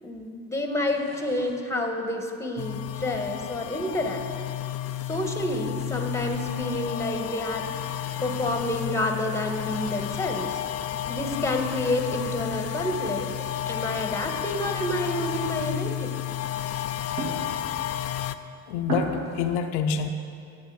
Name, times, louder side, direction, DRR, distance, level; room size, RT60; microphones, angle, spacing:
voice 1, 0.0-4.2 5.0-7.7 8.2-10.6 11.1-13.3 13.7-16.2, left 1 dB, 5° left, 4 dB, 1.2 m, -29 dB
sound 1, 0.8-2.1 3.0-4.5 4.7-5.4 5.6-8.7 9.4-11.0 11.4-14.0 14.4-17.9 18.4-18.5 18.8-19.5, right 2 dB, 50° right, 2.4 m, -41 dB
sound 2, 2.6-18.4, left 12 dB, 35° left, 0.4 m, -32 dB
voice 2, 18.7-20.1, left 7 dB, 75° left, 5 dB, 0.7 m, -27 dB
10.5 x 7.3 x 4.7 m, 2.4 s
hypercardioid pair, 75°, 44 cm